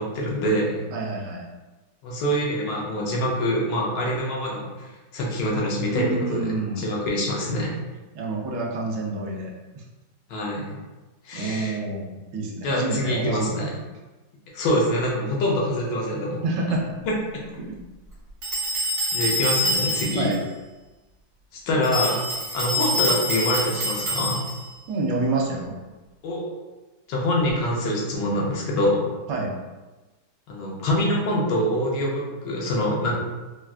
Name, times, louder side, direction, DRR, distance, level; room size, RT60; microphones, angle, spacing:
voice 1, 0.0-0.8 2.0-6.4 6.8-7.7 10.3-10.8 11.2-11.8 12.6-13.7 14.5-16.4 17.1-17.2 19.1-20.3 21.5-22.2 22.5-24.4 26.2-26.4 27.1-29.0 30.5-33.1, left 1 dB, 80° left, -3 dB, 1.4 m, -25 dB
voice 2, 0.9-1.4 5.9-6.8 8.1-9.8 11.3-13.7 16.3-17.0 17.6-17.8 20.2-20.4 24.9-25.8 29.3-29.6, right 3 dB, 80° right, 0 dB, 1.2 m, -28 dB
sound 1, 18.4-20.4 21.8-24.7, equal, 50° right, 1.0 m, -26 dB
3.8 x 2.3 x 2.3 m, 1.2 s
omnidirectional pair, 1.9 m